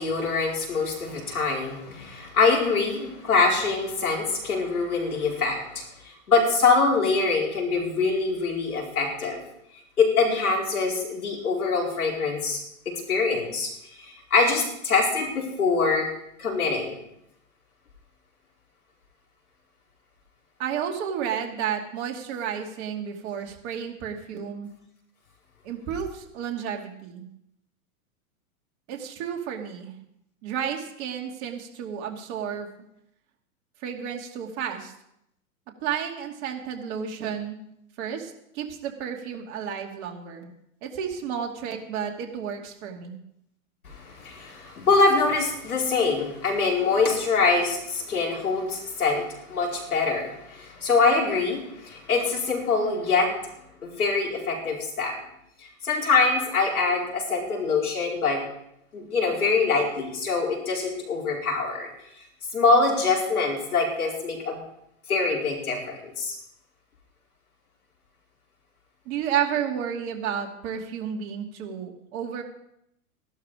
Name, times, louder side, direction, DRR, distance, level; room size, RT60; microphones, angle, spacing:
voice 1, 0.0-9.4 10.0-13.7 14.0-16.1 16.4-17.0 43.8-53.3 53.8-55.1 55.8-58.4 58.9-61.9 62.5-64.6 65.1-66.4, left 4 dB, 85° left, -1 dB, 4.8 m, -24 dB
voice 2, 20.6-24.7 25.6-27.3 28.9-30.0 30.4-32.7 33.8-34.9 35.8-37.6 38.0-40.5 40.8-43.2 69.1-72.4, right 8 dB, 50° right, 2 dB, 2.6 m, -31 dB
14.5 x 12.0 x 5.0 m, 0.79 s
hypercardioid pair, 115°, 43 cm